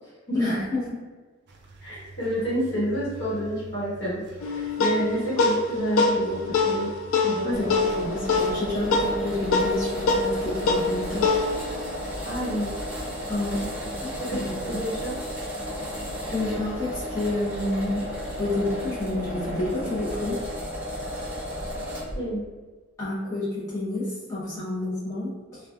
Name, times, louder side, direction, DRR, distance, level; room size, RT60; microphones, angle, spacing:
voice 1, 0.3-0.8 7.4-11.4 13.3-13.6 14.0-14.6 16.3-18.1 18.4-20.4 23.0-25.6, left 2 dB, 15° left, -12 dB, 0.9 m, -29 dB
sound 1, 1.5-7.8, right 3 dB, 50° right, 0.4 m, -45 dB
voice 2, 1.8-6.9 7.2-7.8 12.2-12.8 14.3-14.4 14.6-15.1 22.1-22.4, equal, 55° left, -8 dB, 1.1 m, -29 dB
sound 2, 4.4-13.2, left 3 dB, 80° left, 0.3 m, -25 dB
sound 3, 7.5-22.2, equal, 10° right, 0.7 m, -33 dB
3.1 x 2.2 x 2.5 m, 1.4 s
head